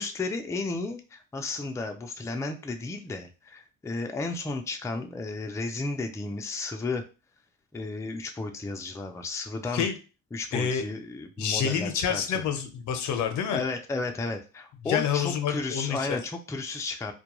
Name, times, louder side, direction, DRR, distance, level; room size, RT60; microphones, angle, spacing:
voice 1, 0.0-7.0 7.7-9.9 10.3-12.4 13.5-17.1, left 3 dB, 10° left, 4 dB, 0.4 m, -33 dB
voice 2, 10.5-10.8 11.4-13.6 14.8-16.2, left 8 dB, 75° left, 7 dB, 0.6 m, -28 dB
2.2 x 2.2 x 2.9 m, 0.33 s
cardioid pair, 90°, 30 cm